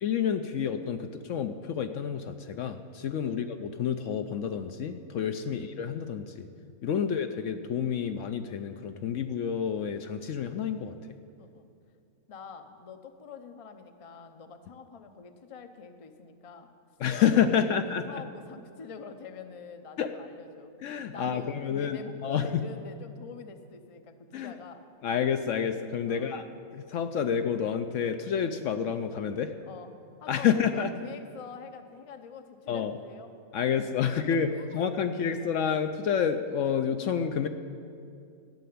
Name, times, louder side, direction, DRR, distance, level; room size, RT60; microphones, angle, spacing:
voice 1, 0.0-6.5 6.8-11.0 17.0-18.2 20.0-20.1 20.8-22.6 24.3-24.5 25.0-26.5 26.7-29.5 30.3-30.9 32.7-32.9 33.5-37.5, left 7 dB, 70° left, 8 dB, 0.8 m, -29 dB
voice 2, 12.3-16.7 17.2-20.7 21.1-24.8 26.1-26.5 29.7-29.9 30.2-33.3 34.0-35.5, left 5 dB, 35° left, 7 dB, 0.5 m, -46 dB
13.5 x 6.8 x 9.4 m, 2.4 s
omnidirectional pair, 1.5 m